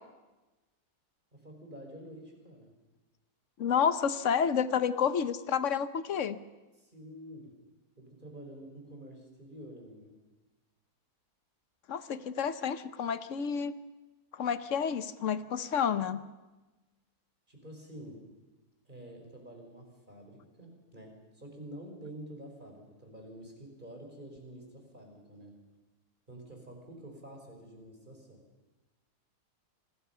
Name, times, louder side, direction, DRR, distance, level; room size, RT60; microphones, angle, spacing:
voice 1, 1.3-2.7 6.8-7.5 8.0-10.2 17.5-18.2 18.9-25.5 26.3-28.4, right 1 dB, 30° right, 2 dB, 4.8 m, -48 dB
voice 2, 3.6-6.4 11.9-13.7 14.3-16.2, left 7 dB, 55° left, 13 dB, 1.1 m, -30 dB
26.5 x 21.0 x 5.7 m, 1.2 s
omnidirectional pair, 1.7 m